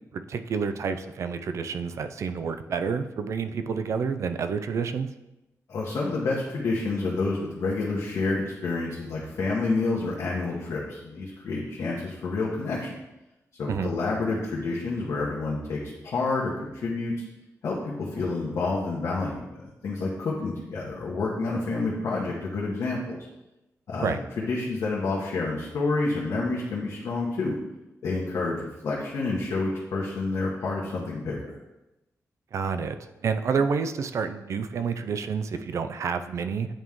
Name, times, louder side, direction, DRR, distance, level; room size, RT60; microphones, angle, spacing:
voice 1, 0.1-5.1 13.7-13.9 24.0-24.2 32.5-33.0 33.2-36.7, right 5 dB, 60° right, 9 dB, 0.4 m, -29 dB
voice 2, 5.7-12.9 13.6-17.1 17.6-23.2 23.9-27.6 28.0-31.4, left 3 dB, 65° left, -5 dB, 1.1 m, -29 dB
8.8 x 3.1 x 3.5 m, 0.96 s
wide cardioid pair, 155°, 6 cm